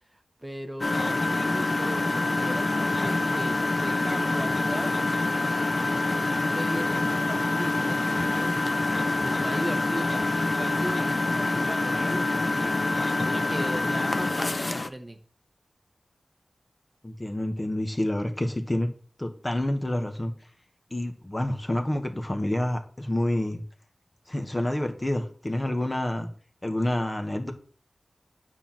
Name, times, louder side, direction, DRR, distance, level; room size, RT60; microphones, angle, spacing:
voice 1, 0.1-4.9 5.7-12.8 13.2-15.2, right 1 dB, 20° right, 5 dB, 1.2 m, -38 dB
Engine, 0.8-14.9, left 2 dB, 40° left, 0.8 m, -26 dB
voice 2, 17.0-18.9 19.2-20.3 20.9-23.6 24.3-26.3 26.6-27.5, left 1 dB, 20° left, 5 dB, 1.6 m, -28 dB
9.7 x 4.5 x 7.7 m, 0.43 s
wide cardioid pair, 75°, 0 cm